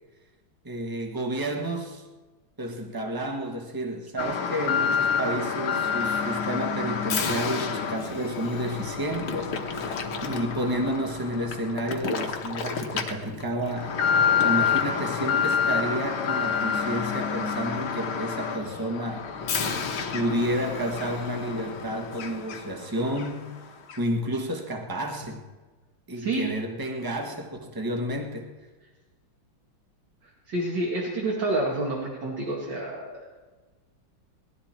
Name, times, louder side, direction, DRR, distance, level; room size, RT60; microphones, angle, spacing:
voice 1, 0.6-2.0 2.6-13.9 14.4-19.2 20.1-23.5 24.0-25.4 26.1-28.5, right 1 dB, 10° right, 3 dB, 1.3 m, -31 dB
Alarm, 4.2-22.8 23.2-23.3 23.9-24.0, left 6 dB, 85° left, 2.1 m, -28 dB
voice 2, 30.5-33.4, right 2 dB, 60° right, -3 dB, 2.8 m, -28 dB
20.0 x 12.0 x 4.5 m, 1.3 s
omnidirectional pair, 2.2 m